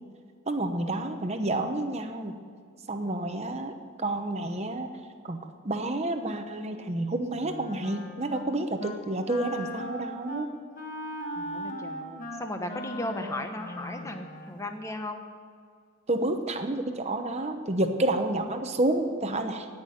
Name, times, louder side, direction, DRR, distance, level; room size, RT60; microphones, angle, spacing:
voice 1, 0.5-2.4 2.9-4.9 5.2-5.4 5.6-10.5 16.1-19.7, right 2 dB, 30° right, 6 dB, 0.9 m, -29 dB
Wind instrument woodwind instrument, 7.3-8.5 8.8-9.0 9.3-14.6, left 1 dB, 40° left, 1.6 m, -38 dB
voice 2, 11.4-15.2, left 1 dB, 15° left, 5 dB, 1.0 m, -36 dB
17.5 x 6.1 x 9.4 m, 2.1 s
head